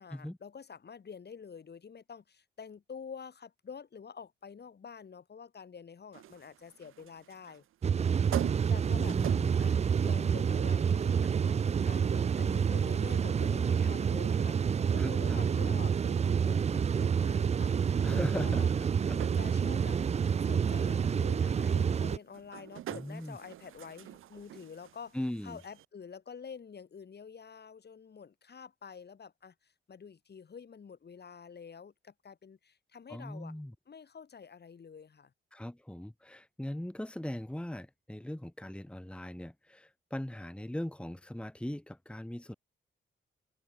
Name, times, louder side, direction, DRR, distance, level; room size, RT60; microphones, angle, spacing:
voice 1, 0.0-7.6 8.7-9.2 9.6-18.7 19.4-20.0 20.4-25.2 25.4-33.5 33.9-35.3, left 6 dB, 55° left, 5.6 m, -48 dB
sound 1, 6.1-25.9, right 12 dB, 85° right, 1.0 m, -47 dB
sound 2, 7.8-22.2, right 7 dB, 30° right, 0.4 m, -28 dB
voice 2, 8.9-9.6 14.9-15.8 18.0-19.4 22.9-23.4 25.1-25.6 33.1-33.7 35.5-42.5, left 1 dB, 5° left, 1.5 m, -40 dB
open air
cardioid pair, 70°, 21 cm